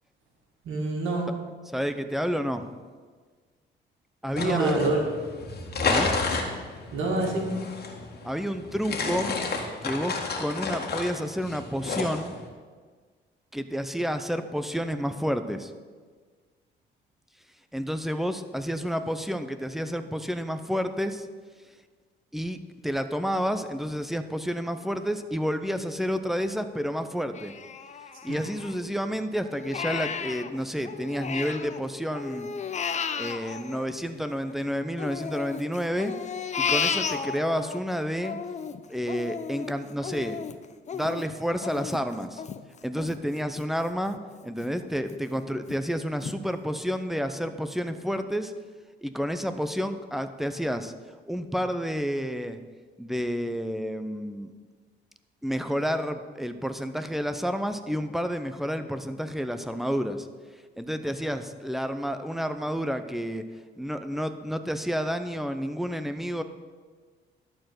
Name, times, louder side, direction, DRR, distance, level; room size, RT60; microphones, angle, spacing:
voice 1, 0.6-1.3 4.4-5.1 6.9-7.5 28.3-28.4, right 2 dB, 80° right, 0 dB, 2.1 m, -26 dB
voice 2, 1.7-2.7 4.2-4.8 5.8-6.1 8.2-9.3 9.8-12.3 13.5-15.7 17.7-21.3 22.3-22.6 22.8-27.5 28.2-32.5 33.1-36.1 36.6-38.4 38.9-40.4 40.9-42.4 42.8-44.2 44.4-48.5 49.0-50.9 51.3-52.6 53.0-54.5 55.4-60.3 60.8-63.4 63.8-66.4, equal, ahead, 8 dB, 0.7 m, -30 dB
sound 1, 4.3-12.5, left 4 dB, 55° left, 1.8 m, -31 dB
Crying sobbing, 27.3-29.0 29.4-31.8 32.1-34.5 35.0-37.8 38.2-43.7 44.1-44.2 44.6-45.2 45.7-45.8 46.2-46.4, left 6 dB, 35° left, 0.6 m, -33 dB
12.0 x 4.5 x 7.8 m, 1.5 s
cardioid pair, 90°, 20 cm